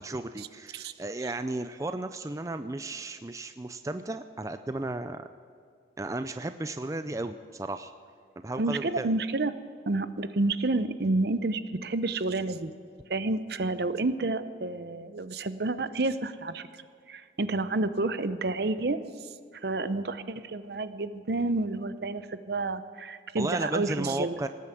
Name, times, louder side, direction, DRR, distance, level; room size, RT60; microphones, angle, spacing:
voice 1, 0.0-5.3 6.0-7.9 8.4-9.2 23.4-24.5, right 2 dB, 15° right, 9 dB, 0.4 m, -34 dB
voice 2, 8.6-9.5 9.9-12.7 13.1-16.7 17.1-19.0 19.6-24.4, right 2 dB, 55° right, 13 dB, 0.7 m, -29 dB
18.5 x 9.4 x 7.8 m, 2.2 s
head